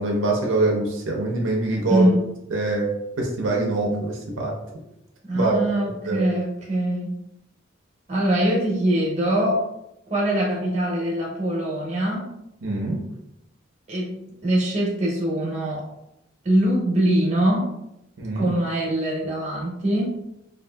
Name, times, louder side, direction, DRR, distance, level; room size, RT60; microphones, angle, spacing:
voice 1, 0.0-2.1 2.5-2.9 3.2-4.6 5.3-5.6 6.0-6.2 12.6-13.0 18.2-18.5, right 2 dB, 90° right, 0 dB, 0.5 m, -24 dB
voice 2, 5.2-7.2 8.1-9.6 10.1-12.3 13.9-14.2 14.4-15.8 16.4-17.8 18.3-20.2, right 1 dB, 35° right, -4 dB, 0.8 m, -23 dB
2.6 x 2.4 x 2.2 m, 0.84 s
head